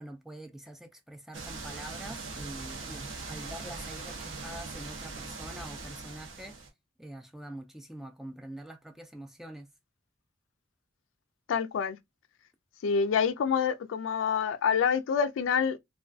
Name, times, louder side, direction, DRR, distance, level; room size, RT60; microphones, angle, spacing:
voice 1, 0.0-6.6 7.0-9.7, right 1 dB, ahead, 0.3 m, -45 dB
sound 1, 1.3-6.7, right 3 dB, 70° right, 0.7 m, -41 dB
voice 2, 11.5-12.0 12.8-15.8, left 6 dB, 80° left, 0.3 m, -27 dB
2.3 x 2.3 x 2.4 m
head